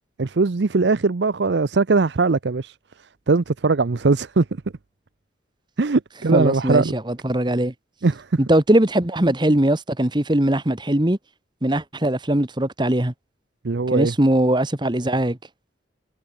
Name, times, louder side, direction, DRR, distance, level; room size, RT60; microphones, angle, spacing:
voice 1, 0.2-2.8 3.3-4.5 5.8-6.9 8.0-8.4 13.6-14.1, right 3 dB, 70° right, 0.6 m, -20 dB
voice 2, 6.3-7.7 8.4-11.2 11.6-13.1 13.9-15.4, right 1 dB, 25° right, 1.3 m, -20 dB
head